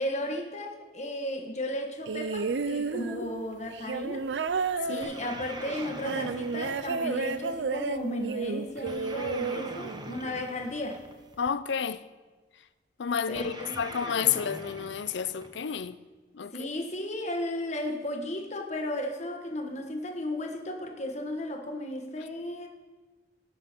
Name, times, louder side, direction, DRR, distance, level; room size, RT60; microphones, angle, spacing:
voice 1, 0.0-4.3 4.9-11.0 13.3-13.8 16.5-22.7, left 1 dB, 40° left, 1.4 m, -34 dB
sound 1, 2.1-10.4 11.5-11.6, right 4 dB, 80° right, 0.5 m, -32 dB
sound 2, 5.0-7.6 8.9-11.4 13.4-15.9, right 2 dB, 25° right, 0.9 m, -43 dB
voice 2, 11.4-12.0 13.0-16.0 16.3-16.7, left 7 dB, 90° left, 0.5 m, -30 dB
16.5 x 5.9 x 6.0 m
head